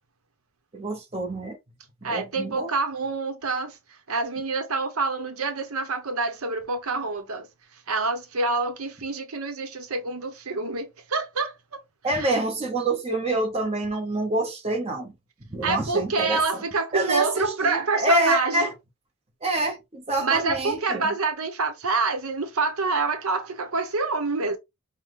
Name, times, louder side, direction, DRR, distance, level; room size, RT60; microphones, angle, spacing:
voice 1, 0.7-1.6 2.0-2.7 12.0-15.1 15.4-16.6 16.9-18.7 19.4-21.1, right 2 dB, 30° right, 1.0 m, -27 dB
voice 2, 2.0-3.8 4.1-7.5 7.9-11.8 12.1-12.3 15.6-18.7 20.2-24.6, right 3 dB, 80° right, 0.9 m, -27 dB
5.7 x 2.2 x 3.1 m
head